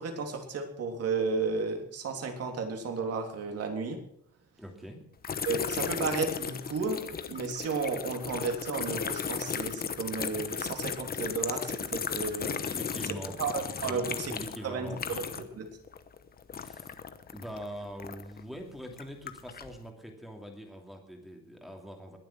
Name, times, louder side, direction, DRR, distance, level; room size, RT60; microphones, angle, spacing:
voice 1, 0.0-4.0 5.4-7.0 7.3-12.6 13.4-14.3 14.6-15.7, right 4 dB, 40° right, 4 dB, 3.3 m, -33 dB
voice 2, 4.6-5.0 12.6-13.6 13.8-15.1 16.5-17.0 17.3-22.2, equal, ahead, 2 dB, 2.8 m, -43 dB
sound 1, 5.2-15.6 15.9-18.4 18.9-19.7, left 7 dB, 25° left, 1.0 m, -35 dB
21.5 x 7.5 x 6.2 m, 0.68 s
cardioid pair, 150°, 36 cm